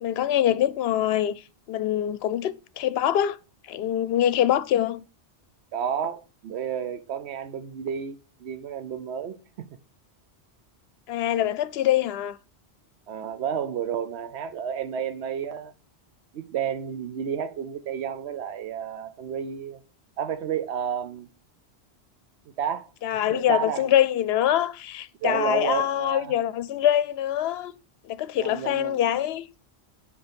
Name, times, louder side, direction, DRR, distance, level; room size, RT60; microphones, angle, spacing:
voice 1, 0.0-3.4 3.7-5.0 11.1-12.4 23.0-27.7 28.0-29.5, left 11 dB, 75° left, 0.8 m, -24 dB
voice 2, 5.7-9.7 13.1-15.7 16.3-19.8 20.2-21.3 22.6-23.9 25.2-26.3 28.4-29.0, right 8 dB, 85° right, 1.0 m, -31 dB
8.0 x 5.0 x 5.1 m
omnidirectional pair, 1.1 m